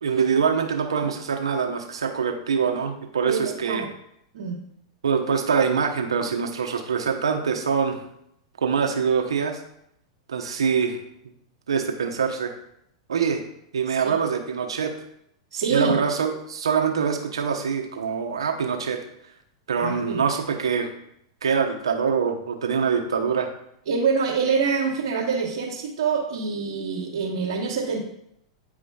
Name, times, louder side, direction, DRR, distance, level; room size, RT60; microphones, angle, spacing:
voice 1, 0.0-3.9 5.0-8.0 8.6-9.6 10.3-11.0 11.7-12.5 13.1-13.4 13.7-14.9 15.7-19.0 19.7-20.9 21.4-23.5, right 6 dB, 85° right, 3 dB, 0.9 m, -24 dB
voice 2, 3.3-3.9 4.3-4.6 14.0-14.1 15.5-15.9 19.8-20.2 23.9-28.0, right 5 dB, 70° right, -6 dB, 1.4 m, -25 dB
9.4 x 4.9 x 2.3 m, 0.74 s
hypercardioid pair, 105°, 3 cm